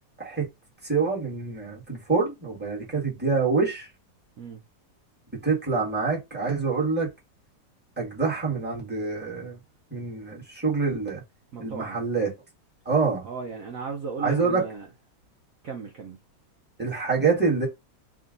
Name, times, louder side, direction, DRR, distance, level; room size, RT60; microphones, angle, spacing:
voice 1, 0.8-3.9 5.4-7.1 8.0-9.6 9.9-11.2 11.6-12.3 12.8-13.2 14.2-14.6 16.8-17.7, right 4 dB, 5° right, 1.5 m, -26 dB
voice 2, 11.5-12.0 13.2-14.9 15.6-16.2, right 5 dB, 60° right, 1.0 m, -36 dB
3.7 x 2.7 x 3.7 m
omnidirectional pair, 1.9 m